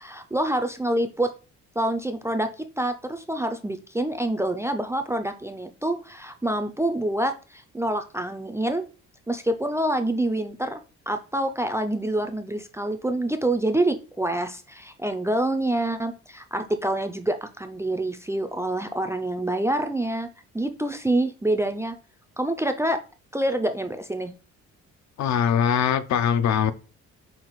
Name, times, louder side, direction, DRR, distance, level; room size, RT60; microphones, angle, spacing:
voice 1, 0.0-1.3 1.8-8.9 9.3-10.8 11.1-20.3 20.5-22.0 22.4-23.0 23.3-24.3, right 1 dB, 10° right, 0.3 m, -26 dB
voice 2, 25.2-26.7, left 8 dB, 65° left, 0.5 m, -22 dB
5.6 x 2.5 x 3.0 m
cardioid pair, 90°, 30 cm